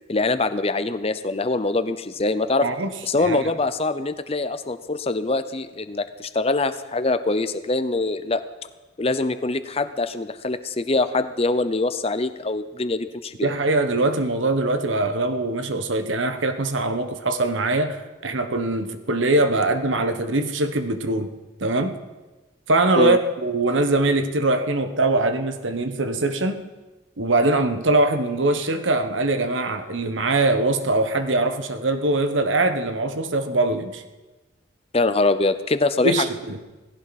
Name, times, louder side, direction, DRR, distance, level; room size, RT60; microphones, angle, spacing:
voice 1, 0.1-2.7 3.0-8.4 9.0-13.5 23.0-23.2 34.9-36.3, left 2 dB, 30° left, 12 dB, 0.7 m, -23 dB
voice 2, 2.6-2.9 3.2-3.4 13.4-21.3 21.6-21.9 22.7-26.6 27.2-34.0 36.0-36.6, right 2 dB, 80° right, 8 dB, 1.3 m, -22 dB
17.5 x 16.0 x 4.2 m, 1.2 s
head